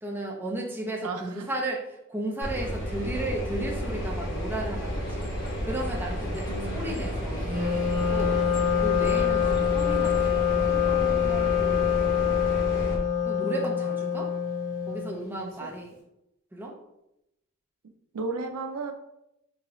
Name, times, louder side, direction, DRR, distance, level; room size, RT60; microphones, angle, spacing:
voice 1, 0.0-5.3 5.6-8.4 8.7-12.7 13.2-14.3 14.9-16.0 16.5-16.8, right 1 dB, 10° right, -1 dB, 0.4 m, -35 dB
voice 2, 1.0-1.5 6.5-7.1 15.4-15.5 18.1-18.9, right 3 dB, 80° right, 6 dB, 0.4 m, -34 dB
sound 1, 2.4-13.0, equal, 55° left, 0.7 m, -32 dB
sound 2, 4.8-10.5, equal, 20° left, 0.7 m, -39 dB
Wind instrument woodwind instrument, 7.4-15.3, left 8 dB, 45° right, 0.8 m, -25 dB
2.7 x 2.6 x 3.0 m, 0.85 s
head